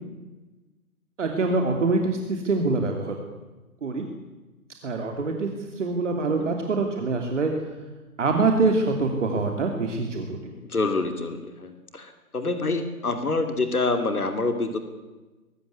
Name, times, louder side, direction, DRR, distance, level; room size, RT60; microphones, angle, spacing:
voice 1, 1.2-3.2 3.8-4.1 4.8-5.5 5.7-7.5 8.2-10.5, right 3 dB, 55° right, 4 dB, 3.0 m, -24 dB
voice 2, 10.7-14.8, left 3 dB, 75° left, 8 dB, 2.8 m, -27 dB
22.0 x 15.0 x 9.7 m, 1.2 s
figure-of-eight pair, 140°, 44 cm